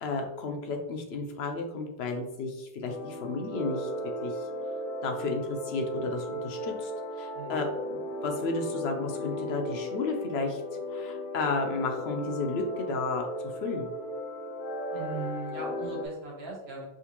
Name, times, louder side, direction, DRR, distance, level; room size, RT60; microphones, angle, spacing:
voice 1, 0.0-3.9 4.2-4.5 5.0-6.9 7.2-10.6 10.9-13.9, left 3 dB, 85° left, 3 dB, 0.9 m, -33 dB
sound 1, 2.9-16.1, equal, 65° left, 0.7 m, -36 dB
voice 2, 14.9-16.8, right 4 dB, 90° right, -2 dB, 1.2 m, -39 dB
3.8 x 2.5 x 2.9 m, 0.90 s
omnidirectional pair, 1.0 m